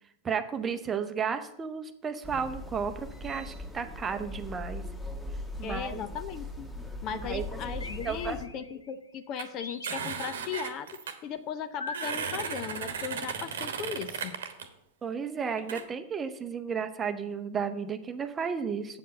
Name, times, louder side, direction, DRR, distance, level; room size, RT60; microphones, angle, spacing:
voice 1, 0.2-4.8 5.6-6.0 7.1-7.4 8.0-8.4 15.0-19.0, right 6 dB, 20° right, 9 dB, 0.8 m, -33 dB
sound 1, 2.2-8.5, left 1 dB, 5° left, 1.7 m, -40 dB
voice 2, 5.6-6.7 7.0-10.9 11.2-14.3, left 7 dB, 35° left, 11 dB, 0.7 m, -37 dB
sound 2, 7.8-8.9 9.6-10.7 11.8-13.3, left 3 dB, 80° left, 0.7 m, -43 dB
sound 3, 9.4-9.5 9.8-11.1 11.9-14.7 15.6-15.8, right 6 dB, 60° right, 1.1 m, -35 dB
7.9 x 5.4 x 7.7 m, 0.78 s
figure-of-eight pair, 90°, 0 cm